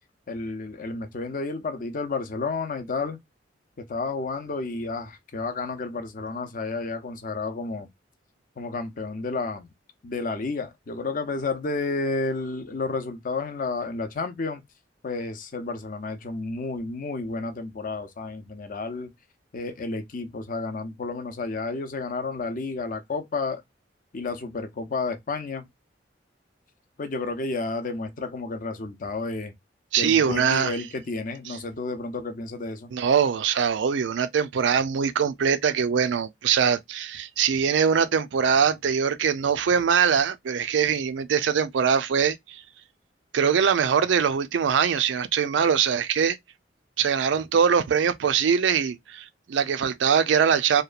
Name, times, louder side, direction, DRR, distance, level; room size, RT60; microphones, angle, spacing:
voice 1, 0.3-3.2 3.8-7.9 8.6-9.7 10.0-14.6 15.0-19.1 19.5-23.6 24.1-25.7 27.0-29.5 30.0-32.9, left 3 dB, 50° left, 0.6 m, -31 dB
voice 2, 29.9-30.8 31.5-31.6 32.9-42.6 43.3-46.4 47.0-50.8, right 7 dB, 80° right, 0.4 m, -22 dB
2.9 x 2.2 x 2.3 m
head